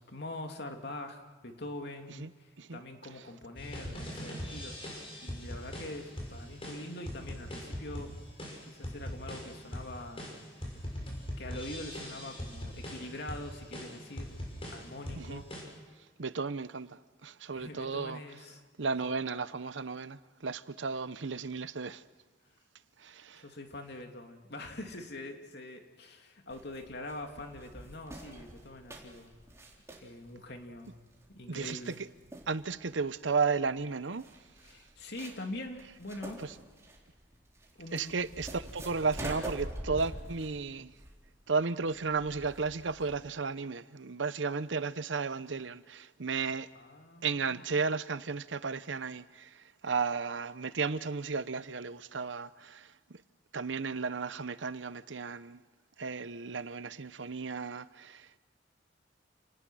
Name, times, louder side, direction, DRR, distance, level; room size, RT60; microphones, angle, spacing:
voice 1, 0.0-8.2 8.7-10.4 11.4-14.3 14.6-15.5 17.5-18.6 19.0-19.2 23.3-29.4 30.0-31.0 31.3-32.0 34.6-36.4 37.7-38.2 46.7-47.6, left 1 dB, 65° left, 2.8 m, -44 dB
sound 1, 3.6-15.6, equal, 30° left, 6.3 m, -41 dB
voice 2, 16.2-18.2 18.8-22.0 23.0-23.4 31.5-31.9 32.5-34.3 36.4-36.5 37.9-40.9 41.5-46.7 47.2-52.9 53.5-55.6 56.0-58.4, right 4 dB, 85° right, 0.8 m, -34 dB
sound 2, 26.5-43.3, right 1 dB, 15° right, 3.8 m, -46 dB
29.0 x 19.5 x 6.3 m
head